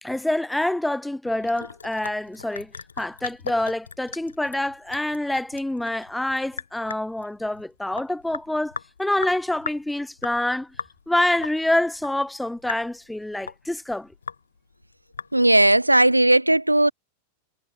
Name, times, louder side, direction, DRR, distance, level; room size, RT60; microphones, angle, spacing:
voice 1, 0.0-2.7 3.0-10.7 11.1-14.1, left 1 dB, 5° left, 1.6 m, -26 dB
Sink (filling or washing) / Drip, 1.2-15.7, left 5 dB, 75° left, 5.6 m, -39 dB
voice 2, 15.3-16.9, right 1 dB, 85° right, 1.6 m, -17 dB
figure-of-eight pair, 90°, 0 cm